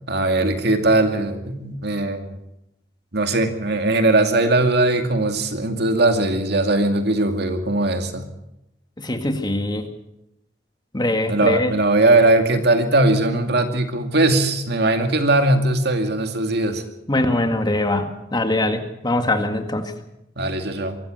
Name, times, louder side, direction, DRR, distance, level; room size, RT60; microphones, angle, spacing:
voice 1, 0.1-2.4 3.1-8.2 11.3-16.8 20.4-21.0, right 2 dB, 65° right, 6 dB, 2.4 m, -19 dB
voice 2, 9.0-9.9 10.9-11.7 17.1-19.9, left 1 dB, 25° left, 7 dB, 1.9 m, -22 dB
23.5 x 14.0 x 7.9 m, 0.85 s
head